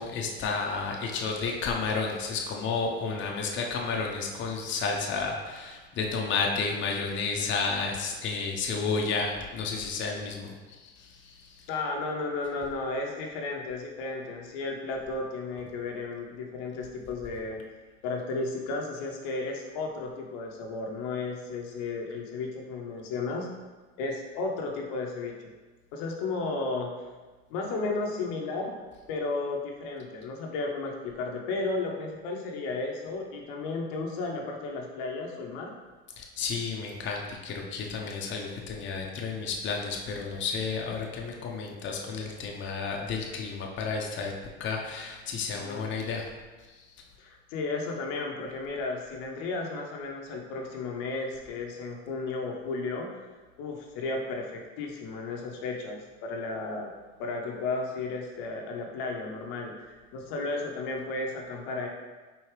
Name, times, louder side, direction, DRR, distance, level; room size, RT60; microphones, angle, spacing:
voice 1, 0.0-11.7 36.2-46.3 46.7-46.9, left 4 dB, 35° left, 0 dB, 0.7 m, -32 dB
voice 2, 11.7-17.6 18.0-23.5 24.0-25.5 25.9-26.9 27.5-28.8 29.1-35.7 45.5-45.9 47.2-53.1 53.6-56.9 57.2-61.9, left 3 dB, 70° left, 1 dB, 0.8 m, -33 dB
4.6 x 2.7 x 3.2 m, 1.3 s
supercardioid pair, 90°, 33 cm